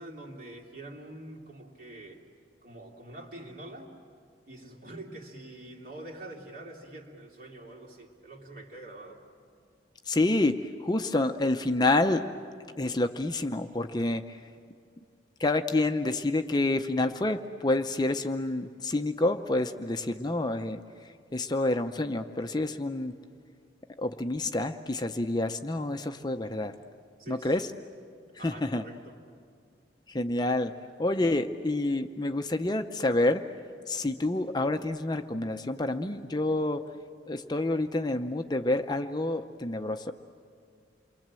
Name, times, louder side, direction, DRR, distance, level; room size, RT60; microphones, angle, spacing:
voice 1, 0.0-2.2 2.6-3.9 4.4-9.2 27.2-27.7 28.3-29.1, right 1 dB, 50° right, -1 dB, 3.2 m, -45 dB
voice 2, 10.1-12.3 12.8-14.4 15.4-20.8 21.3-23.1 24.0-26.7 27.3-27.7 28.4-28.8 30.1-30.7 31.0-33.4 33.9-36.8 37.3-40.1, left 2 dB, 25° left, 7 dB, 0.6 m, -28 dB
28.5 x 23.0 x 7.6 m, 2.2 s
head